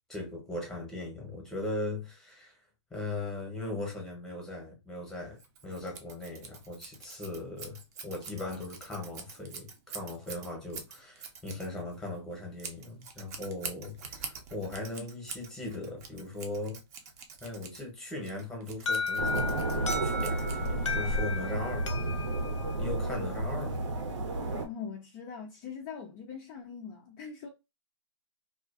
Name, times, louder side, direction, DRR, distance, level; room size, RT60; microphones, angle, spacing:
voice 1, 0.1-2.6 2.9-5.4 5.6-16.8 17.4-22.2 22.8-23.8, left 2 dB, 5° left, 0.8 m, -39 dB
Scissors, 5.4-21.0, right 5 dB, 35° right, 0.5 m, -46 dB
Alarm, 18.9-23.6, left 3 dB, 90° left, 0.6 m, -35 dB
sound 1, 19.2-24.7, right 2 dB, 90° right, 0.9 m, -32 dB
voice 2, 24.6-27.5, left 6 dB, 25° left, 0.4 m, -42 dB
2.4 x 2.3 x 2.3 m
hypercardioid pair, 150°, 15 cm